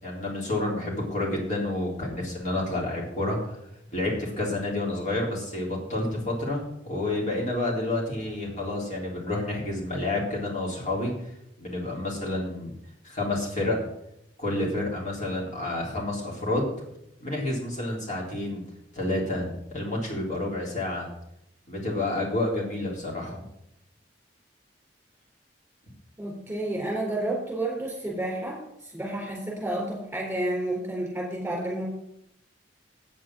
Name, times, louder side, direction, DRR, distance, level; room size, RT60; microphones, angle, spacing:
voice 1, 0.0-3.6 3.9-11.1 11.6-12.7 13.0-13.8 14.4-16.7 17.2-18.6 19.0-21.1 21.7-23.5, left 2 dB, 45° left, -3 dB, 3.7 m, -29 dB
voice 2, 26.2-31.8, right 1 dB, 5° right, -3 dB, 3.9 m, -30 dB
8.8 x 7.7 x 7.7 m, 0.80 s
head